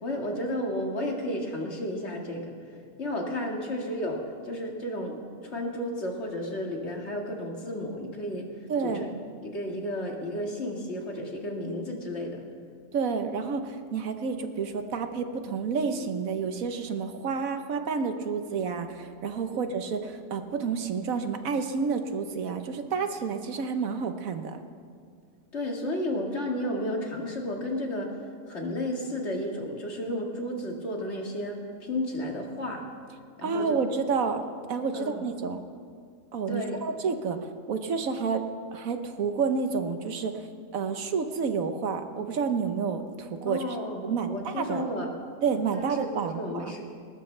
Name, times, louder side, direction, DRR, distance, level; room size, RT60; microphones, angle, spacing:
voice 1, 0.0-2.5 3.0-8.5 8.8-9.2 9.4-12.4 25.5-28.2 28.5-32.9 33.4-33.9 34.9-35.2 36.5-36.8 43.5-45.1 45.7-46.8, left 1 dB, 50° left, 0 dB, 2.2 m, -32 dB
voice 2, 8.7-9.2 12.9-24.6 33.4-34.4 34.7-35.6 36.3-38.4 38.7-40.5 40.7-43.6 44.0-44.9 45.4-46.7, right 5 dB, 75° right, 7 dB, 1.4 m, -29 dB
20.0 x 19.5 x 3.3 m, 2.2 s
omnidirectional pair, 1.5 m